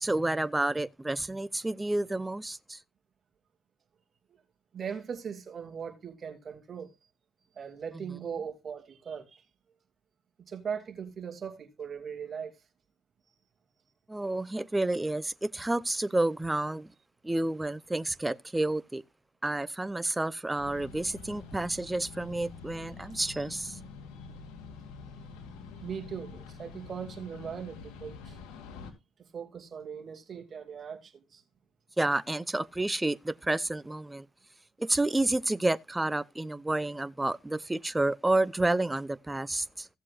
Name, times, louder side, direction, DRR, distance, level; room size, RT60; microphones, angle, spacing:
voice 1, 0.0-2.8 14.1-16.9 17.2-19.0 19.4-23.8 32.0-34.3 34.8-39.9, right 2 dB, 15° right, 0.7 m, -30 dB
voice 2, 4.7-6.9 7.4-9.4 10.4-12.5 25.8-28.4 29.3-31.4, right 7 dB, 45° right, 2.6 m, -39 dB
sound 1, 20.6-28.9, left 5 dB, 90° left, 2.5 m, -46 dB
16.5 x 7.4 x 2.5 m
cardioid pair, 80°, 0 cm